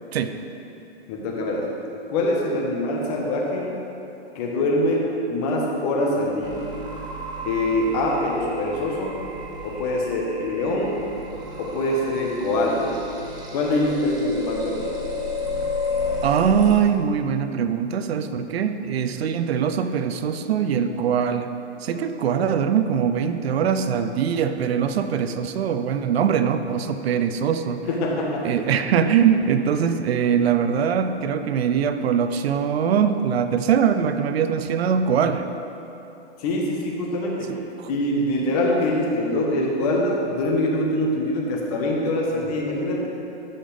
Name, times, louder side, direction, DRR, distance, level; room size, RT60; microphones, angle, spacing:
voice 1, 1.1-1.7 2.1-3.7 4.3-6.6 7.4-9.2 9.6-11.0 11.6-12.9 13.5-14.8 27.9-28.5 36.4-37.5 37.9-43.1, left 1 dB, 35° left, -1 dB, 1.2 m, -24 dB
sound 1, 6.4-16.8, left 2 dB, 10° right, 0.8 m, -32 dB
voice 2, 16.2-21.5 21.8-27.8 28.4-35.4 37.8-37.9, right 7 dB, 65° right, 9 dB, 0.6 m, -22 dB
13.0 x 5.6 x 3.4 m, 2.9 s
hypercardioid pair, 155°, 34 cm